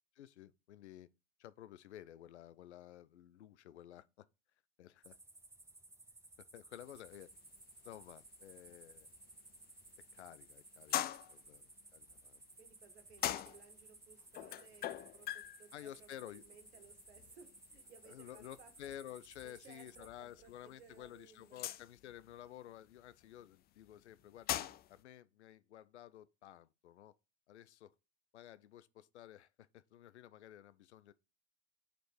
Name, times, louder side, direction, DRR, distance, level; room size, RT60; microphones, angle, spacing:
voice 1, 0.2-1.1 1.4-4.3 4.8-5.2 6.4-7.3 7.8-9.1 10.1-11.6 11.9-12.4 15.7-16.4 18.1-24.6 24.9-27.1 27.5-27.9 28.3-31.1, left 12 dB, 75° left, 0.6 m, -53 dB
sound 1, 5.0-20.1, right 2 dB, 10° right, 0.9 m, -59 dB
sound 2, 6.8-25.0, left 12 dB, 30° left, 0.4 m, -46 dB
voice 2, 12.6-18.7 19.4-21.7, right 6 dB, 70° right, 1.7 m, -62 dB
5.1 x 4.4 x 4.8 m
figure-of-eight pair, 75°, 34 cm